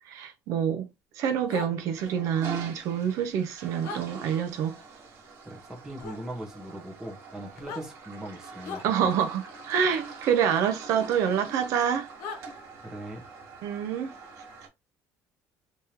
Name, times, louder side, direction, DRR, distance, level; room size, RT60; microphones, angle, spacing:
voice 1, 0.1-0.9 1.2-4.7 8.8-12.1 13.6-14.1, right 8 dB, 65° right, 0.6 m, -27 dB
sound 1, 1.5-1.7 3.8-4.0 6.0-6.2 7.5-7.8 8.6-8.9 10.9-11.1 12.2-12.4, left 5 dB, 85° left, 1.0 m, -37 dB
Toilet flush, 1.7-14.7, right 4 dB, 45° right, 1.5 m, -45 dB
voice 2, 5.4-9.1 12.8-13.2, right 1 dB, 10° right, 1.1 m, -40 dB
3.5 x 3.1 x 2.8 m
cardioid pair, 170°, 6 cm